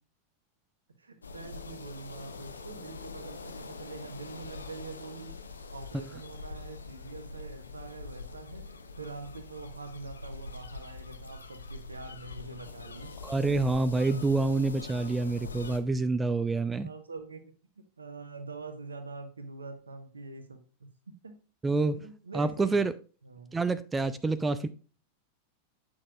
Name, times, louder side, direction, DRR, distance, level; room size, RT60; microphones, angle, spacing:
voice 1, 1.0-5.3 5.7-13.1 16.8-17.5 18.0-21.4 21.7-22.8 23.2-23.6, right 3 dB, 75° right, 1.0 m, -44 dB
sound 1, 1.2-15.8, left 4 dB, 75° left, 0.7 m, -44 dB
voice 2, 13.2-16.9 21.6-22.0 22.3-22.9 23.5-24.7, right 3 dB, 10° right, 0.4 m, -27 dB
8.7 x 6.3 x 2.4 m
figure-of-eight pair, 90°, 0 cm